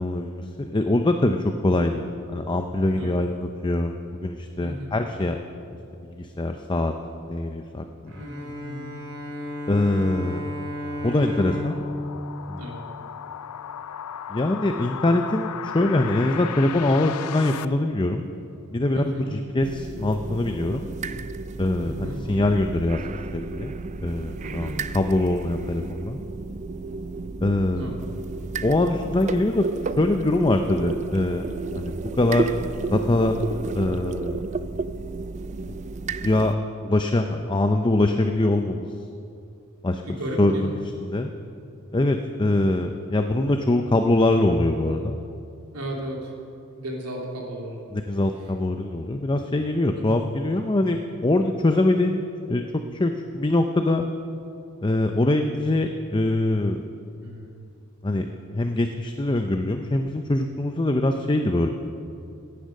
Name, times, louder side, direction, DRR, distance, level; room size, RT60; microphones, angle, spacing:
voice 1, 0.0-2.1 2.3-5.4 6.1-6.9 7.3-8.2 9.7-10.5 11.0-11.8 12.5-12.7 14.3-18.3 18.7-20.9 21.6-23.7 24.0-26.2 27.4-27.9 28.6-31.5 31.7-32.5 32.9-33.4 33.7-34.4 35.7-35.8 36.2-36.6 36.8-38.9 39.8-41.3 41.9-45.2 47.9-54.0 54.8-56.8 58.0-58.3 58.5-61.7, left 2 dB, 20° left, 5 dB, 0.6 m, -23 dB
voice 2, 4.6-4.9 8.2-8.9 12.5-12.8 18.9-19.3 21.8-22.2 24.4-24.8 27.7-28.0 40.0-40.8 45.7-46.3 46.7-47.8 49.9-50.2 57.2-57.6, equal, 80° right, -2 dB, 3.2 m, -34 dB
Bowed string instrument, 8.1-13.5, left 1 dB, 60° right, 3.8 m, -34 dB
sound 1, 9.0-17.6, left 8 dB, 90° left, 0.4 m, -37 dB
sound 2, 19.6-36.5, right 3 dB, 30° right, 0.4 m, -32 dB
17.0 x 10.0 x 6.5 m, 2.6 s
head